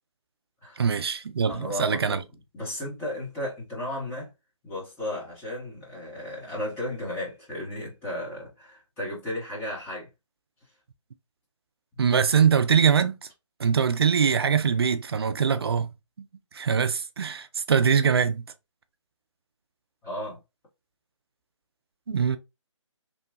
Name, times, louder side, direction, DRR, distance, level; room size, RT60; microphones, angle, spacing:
voice 1, 0.8-2.2 12.0-13.2 13.6-15.9 16.5-18.4 22.1-22.4, right 6 dB, 50° right, 0.4 m, -22 dB
voice 2, 1.5-2.2 2.5-4.3 4.6-10.1 14.6-14.7 20.0-20.4, left 1 dB, 10° left, 1.0 m, -34 dB
3.0 x 2.1 x 2.6 m
figure-of-eight pair, 145°, 16 cm